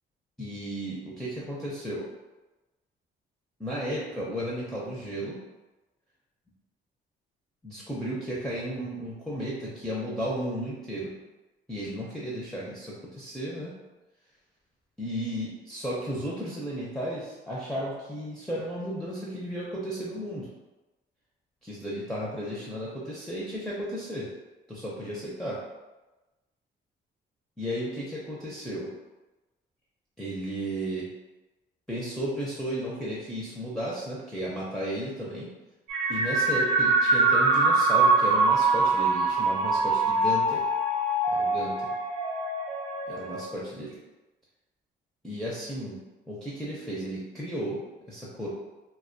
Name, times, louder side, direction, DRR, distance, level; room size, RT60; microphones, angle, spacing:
voice 1, 0.4-2.1 3.6-5.4 7.6-11.1 11.7-13.7 15.0-20.5 21.6-24.3 24.7-25.6 27.6-28.9 30.2-31.1 31.9-35.5 36.1-40.7 41.3-41.9 43.1-44.0 45.2-46.0 46.3-47.8 48.1-48.5, equal, 5° left, -7 dB, 0.5 m, -34 dB
sound 1, 35.9-43.4, right 3 dB, 80° right, 0.5 m, -24 dB
2.2 x 2.2 x 2.5 m, 1.1 s
cardioid pair, 90°, 20 cm